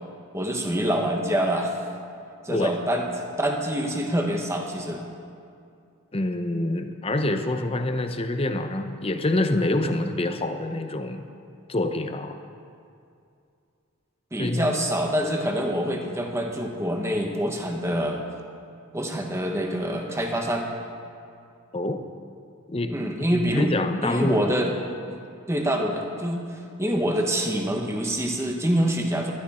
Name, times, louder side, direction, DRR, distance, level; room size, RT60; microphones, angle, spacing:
voice 1, 0.3-1.8 2.4-3.1 3.4-5.0 14.3-18.2 18.9-20.7 22.9-23.7 24.0-24.7 25.1-25.2 25.5-26.5 26.8-29.3, equal, 15° right, 2 dB, 1.3 m, -25 dB
voice 2, 6.1-11.2 11.7-12.4 14.4-14.7 21.7-22.0 22.7-24.5, left 1 dB, 25° left, 8 dB, 0.7 m, -26 dB
20.0 x 12.0 x 4.3 m, 2.5 s
head